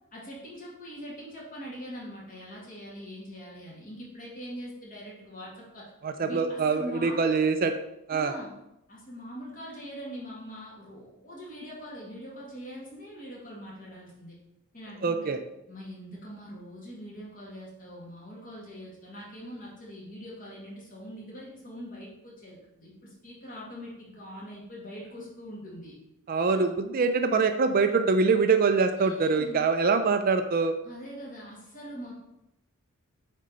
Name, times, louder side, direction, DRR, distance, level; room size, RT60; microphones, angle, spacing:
voice 1, 0.1-5.9 6.2-7.4 8.1-8.5 8.9-14.4 14.7-15.3 15.7-25.9 26.5-26.7 29.0-29.7 30.8-32.1, equal, 40° left, -4 dB, 2.1 m, -42 dB
voice 2, 6.0-7.7 8.1-8.3 15.0-15.4 26.3-30.7, right 4 dB, 40° right, 8 dB, 0.4 m, -24 dB
6.4 x 4.4 x 3.9 m, 0.86 s
head